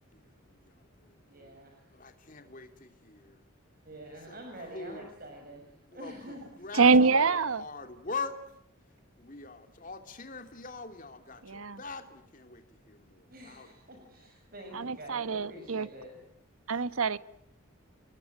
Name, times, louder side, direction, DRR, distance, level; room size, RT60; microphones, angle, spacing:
voice 1, 0.1-1.1 1.9-3.4 4.3-5.1 5.9-8.4 9.2-13.7 16.7-16.9, left 4 dB, 40° left, 7 dB, 2.8 m, -43 dB
voice 2, 1.3-1.8 3.9-6.4 13.3-16.1, right 1 dB, 45° right, 2 dB, 6.0 m, -47 dB
voice 3, 6.7-7.6 11.5-11.8 14.7-15.9 16.7-17.2, right 4 dB, 80° right, 15 dB, 1.0 m, -25 dB
30.0 x 21.0 x 9.2 m, 0.74 s
head